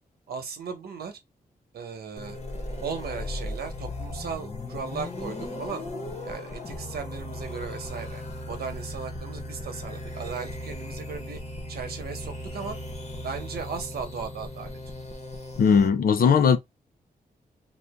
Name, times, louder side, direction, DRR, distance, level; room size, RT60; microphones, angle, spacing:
voice 1, 0.3-1.2 1.7-2.4 2.8-5.8 6.2-11.4 11.7-12.8 13.2-14.8, right 6 dB, 90° right, 1.0 m, -37 dB
sound 1, 2.2-15.9, left 1 dB, 45° left, 1.1 m, -37 dB
voice 2, 15.6-16.6, left 6 dB, 70° left, 0.6 m, -18 dB
2.8 x 2.5 x 3.5 m
wide cardioid pair, 100°, 16 cm